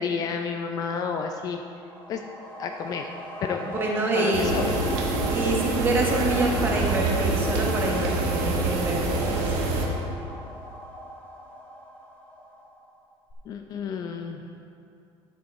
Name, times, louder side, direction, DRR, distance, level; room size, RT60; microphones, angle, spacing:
voice 1, 0.0-1.6 2.1-2.2 2.6-3.1 3.4-3.8 4.1-5.1 13.5-14.4, left 6 dB, 35° left, 5 dB, 0.4 m, -30 dB
sound 1, 1.6-13.0 13.3-13.4, right 1 dB, 15° left, 1.3 m, -39 dB
voice 2, 3.6-4.5 5.3-9.5, right 2 dB, 20° right, -1 dB, 1.3 m, -26 dB
sound 2, 4.3-9.9, right 2 dB, 85° right, 1.6 m, -26 dB
10.0 x 7.7 x 4.6 m, 2.6 s
cardioid pair, 180°, 11 cm